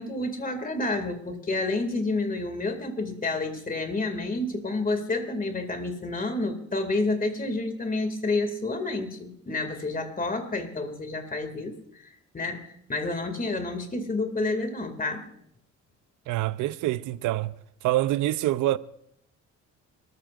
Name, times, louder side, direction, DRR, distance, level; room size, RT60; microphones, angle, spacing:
voice 1, 0.0-15.2, left 2 dB, 30° left, 2.3 m, -29 dB
voice 2, 16.3-17.5 17.8-18.8, right 15 dB, 85° right, 0.6 m, -25 dB
26.5 x 14.0 x 2.5 m
cardioid pair, 90°, 30 cm